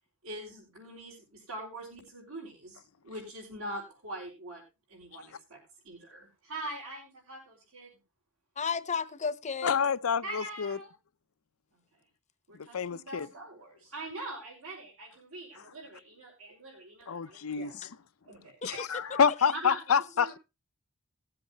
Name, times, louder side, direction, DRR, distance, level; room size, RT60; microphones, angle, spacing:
voice 1, 0.2-4.6 4.9-8.0 10.2-10.9 11.7-11.8 12.5-17.8 18.2-18.9 19.5-19.8 20.2-20.3, right 1 dB, 85° right, 5.0 m, -43 dB
voice 2, 8.6-9.7 18.8-18.9 19.5-19.6, left 5 dB, 35° left, 0.8 m, -33 dB
voice 3, 9.6-10.8 12.5-13.3 17.1-17.9 18.6-20.4, left 6 dB, 80° left, 0.6 m, -28 dB
19.5 x 7.8 x 2.9 m
head